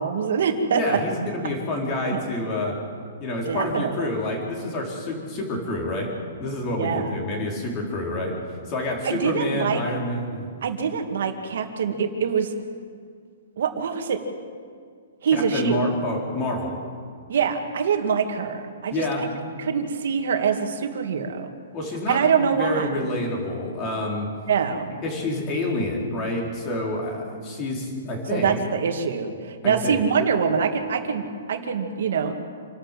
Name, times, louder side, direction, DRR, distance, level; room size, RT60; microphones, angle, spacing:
voice 1, 0.0-0.8 2.1-2.2 3.5-4.1 6.8-7.2 9.0-9.8 10.6-12.5 13.6-14.2 15.2-15.8 17.3-19.3 19.6-21.5 22.1-22.9 24.5-24.9 28.3-32.4, right 6 dB, 60° right, 6 dB, 2.3 m, -24 dB
voice 2, 0.7-2.8 3.2-6.1 6.4-8.3 8.7-10.5 15.3-16.8 18.9-19.2 21.7-22.2 22.5-24.3 25.0-28.6 29.6-30.0, left 1 dB, 25° left, 0 dB, 4.3 m, -28 dB
27.5 x 12.5 x 7.6 m, 2.1 s
hypercardioid pair, 170°, 0 cm